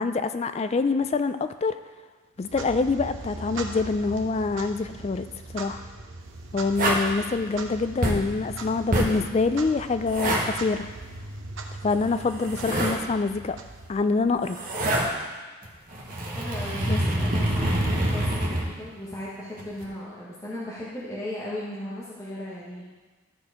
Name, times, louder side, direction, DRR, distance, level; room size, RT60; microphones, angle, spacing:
voice 1, 0.0-1.8 2.4-5.3 5.5-5.8 6.5-10.9 11.8-13.6 13.9-14.6 16.9-17.0, left 4 dB, 30° left, 10 dB, 0.3 m, -25 dB
Clock, 2.4-14.3, right 2 dB, 60° right, 0.8 m, -40 dB
sound 1, 6.7-7.1 8.0-8.3 8.9-9.2 10.1-10.5 12.0-13.0 14.3-15.1 15.6-18.6 19.6-19.8, right 1 dB, 40° right, 1.2 m, -26 dB
voice 2, 16.3-22.9, left 1 dB, 15° left, -8 dB, 1.2 m, -37 dB
12.5 x 4.4 x 4.9 m, 1.3 s
head